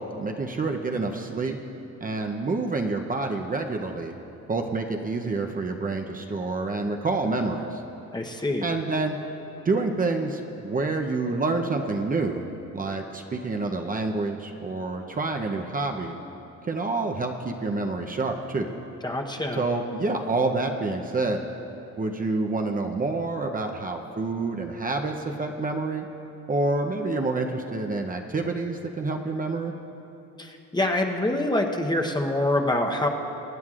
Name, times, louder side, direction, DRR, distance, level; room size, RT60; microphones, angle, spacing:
voice 1, 0.2-1.6 2.0-4.1 4.5-7.8 8.6-9.2 9.6-12.5 12.7-16.2 16.6-18.7 19.5-21.4 22.0-26.1 26.5-29.7, right 3 dB, 30° right, 3 dB, 0.7 m, -28 dB
voice 2, 8.1-8.7 19.0-19.7 30.4-33.1, left 1 dB, 15° left, 2 dB, 0.9 m, -25 dB
23.5 x 9.3 x 2.5 m, 3.0 s
cardioid pair, 90°, 30 cm